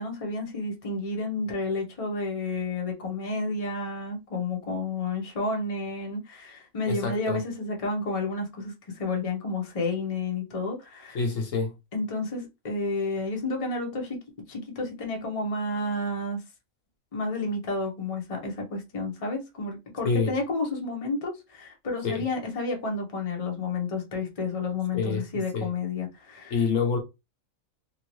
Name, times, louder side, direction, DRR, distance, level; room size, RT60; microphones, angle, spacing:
voice 1, 0.0-11.2 11.9-14.2 14.5-16.4 17.1-26.6, left 3 dB, 30° left, 0.9 m, -31 dB
voice 2, 6.9-7.4 11.1-11.7 20.0-20.3 22.0-22.3 24.9-25.2 25.5-25.7 26.5-27.0, left 4 dB, 70° left, 1.1 m, -26 dB
3.0 x 2.8 x 3.0 m
omnidirectional pair, 1.4 m